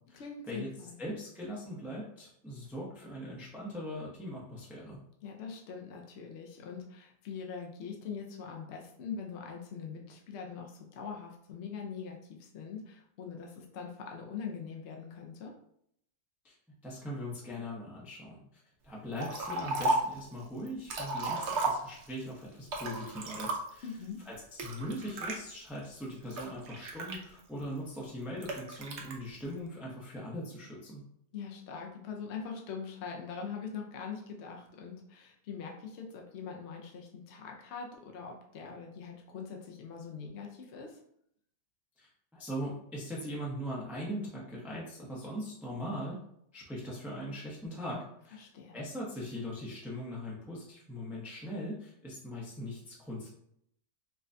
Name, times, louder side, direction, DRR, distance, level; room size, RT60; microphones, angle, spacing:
voice 1, 0.1-1.0 5.2-15.5 23.8-24.2 31.3-41.0 48.3-48.8, left 6 dB, 65° left, 1 dB, 0.7 m, -42 dB
voice 2, 1.0-5.0 16.4-16.5 16.8-18.4 18.8-23.8 24.3-24.4 24.6-31.0 42.0-46.2 46.5-48.4 48.7-53.3, equal, ahead, -5 dB, 0.5 m, -40 dB
Liquid, 19.2-20.2 20.7-22.2 22.7-23.9 24.6-25.4 26.0-27.6 28.4-29.1, right 2 dB, 60° right, 0.8 m, -33 dB
4.8 x 2.2 x 2.5 m, 0.72 s
omnidirectional pair, 1.6 m